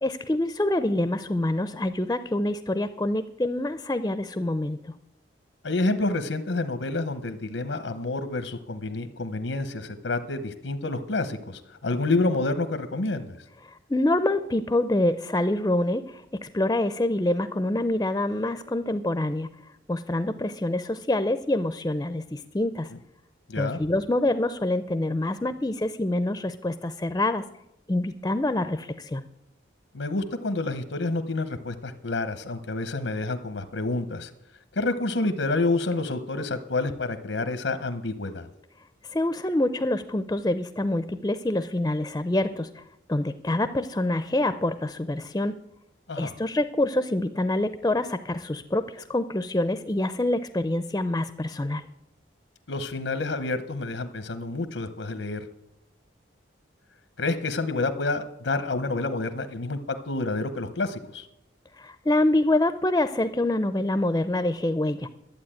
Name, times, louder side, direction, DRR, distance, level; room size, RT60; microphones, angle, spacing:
voice 1, 0.0-4.8 13.6-19.5 19.9-22.9 23.5-27.4 27.9-29.2 39.1-42.8 43.1-45.6 46.2-51.8 61.8-65.1, left 1 dB, 15° left, 12 dB, 0.5 m, -26 dB
voice 2, 5.6-13.4 23.5-23.8 29.9-34.3 34.8-38.5 46.1-46.4 52.7-55.4 57.2-61.2, left 2 dB, 85° left, 9 dB, 0.9 m, -28 dB
12.0 x 8.4 x 8.8 m, 0.85 s
head